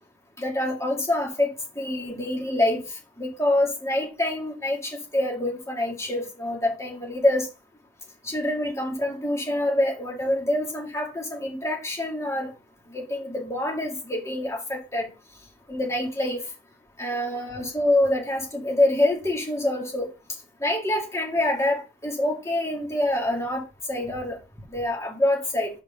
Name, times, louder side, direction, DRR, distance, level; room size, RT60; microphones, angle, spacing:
voice 1, 0.4-1.5 1.8-2.8 3.2-7.5 8.2-12.5 12.9-15.1 15.7-16.4 17.0-20.1 20.6-24.4 24.7-25.7, left 1 dB, 15° left, 2.3 m, -26 dB
5.5 x 5.0 x 5.4 m
head